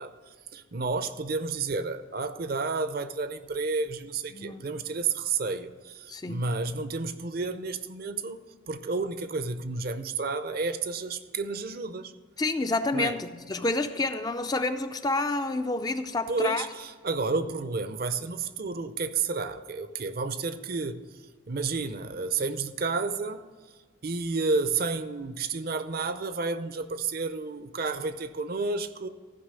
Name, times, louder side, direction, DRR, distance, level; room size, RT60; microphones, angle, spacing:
voice 1, 0.0-8.4 8.7-12.1 12.9-13.2 16.3-21.0 21.5-23.4 24.0-29.1, right 4 dB, 45° right, 0.6 m, -31 dB
voice 2, 4.3-4.7 6.1-6.4 12.4-16.6, left 2 dB, 20° left, 0.4 m, -29 dB
14.5 x 5.5 x 6.6 m
head